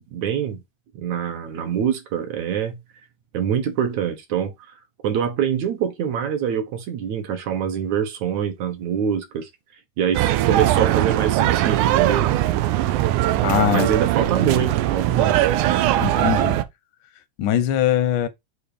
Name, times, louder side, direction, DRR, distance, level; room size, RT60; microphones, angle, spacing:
voice 1, 0.1-0.6 1.0-2.8 3.3-4.7 5.0-9.5 10.0-12.3 13.7-15.4, right 8 dB, 70° right, 2.3 m, -24 dB
sound 1, 10.1-16.6, right 14 dB, 90° right, 2.1 m, -20 dB
voice 2, 13.4-13.9 16.0-16.6 17.4-18.3, left 11 dB, 85° left, 2.3 m, -21 dB
7.0 x 2.8 x 4.9 m
omnidirectional pair, 3.5 m